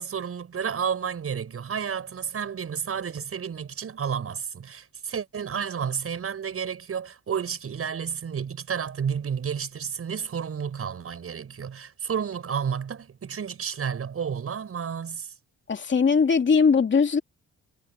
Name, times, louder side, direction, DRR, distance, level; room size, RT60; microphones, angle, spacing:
voice 1, 0.0-15.3, right 7 dB, 50° right, 6.9 m, -31 dB
voice 2, 15.7-17.2, left 5 dB, 40° left, 2.7 m, -20 dB
cardioid pair, 90°, 30 cm